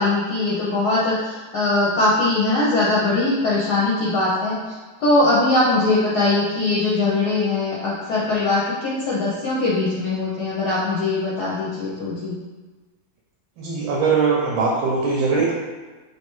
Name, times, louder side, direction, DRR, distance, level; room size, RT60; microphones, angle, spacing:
voice 1, 0.0-4.7 5.0-12.4, left 2 dB, 70° left, -6 dB, 1.0 m, -21 dB
voice 2, 13.6-15.5, right 4 dB, 90° right, -3 dB, 1.4 m, -21 dB
3.2 x 2.8 x 3.0 m, 1.3 s
omnidirectional pair, 2.1 m